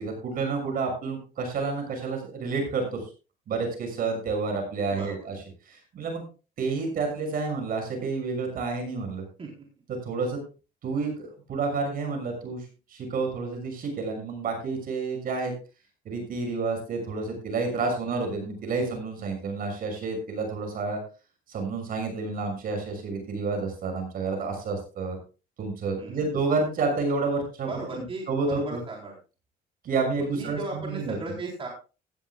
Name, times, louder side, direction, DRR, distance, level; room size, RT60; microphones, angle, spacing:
voice 1, 0.0-3.0 3.5-5.3 5.7-6.2 6.6-9.2 9.9-10.4 10.8-15.5 16.0-21.0 21.5-25.2 25.6-27.7 27.9-28.8 29.8-31.2, right 4 dB, 60° right, 4 dB, 6.5 m, -29 dB
voice 2, 27.7-29.1 30.2-31.7, right 2 dB, 35° right, -1 dB, 4.1 m, -36 dB
16.5 x 13.0 x 2.4 m, 0.33 s
cardioid pair, 110°, 17 cm